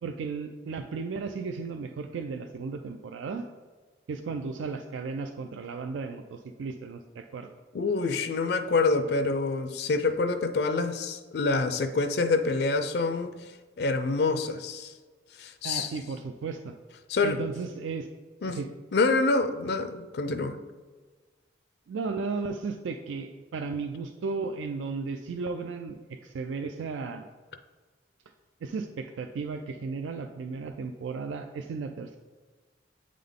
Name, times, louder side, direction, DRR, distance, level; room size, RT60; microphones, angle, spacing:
voice 1, 0.0-3.4 4.1-7.5 15.6-16.7 17.2-18.1 18.5-18.7 21.9-27.2 28.6-32.2, right 4 dB, 85° right, 7 dB, 0.4 m, -35 dB
voice 2, 7.7-13.3 13.8-14.9 15.4-15.9 17.1-17.4 18.4-18.6 18.9-20.6, left 3 dB, 60° left, 9 dB, 0.4 m, -26 dB
8.5 x 3.8 x 3.6 m, 1.4 s
head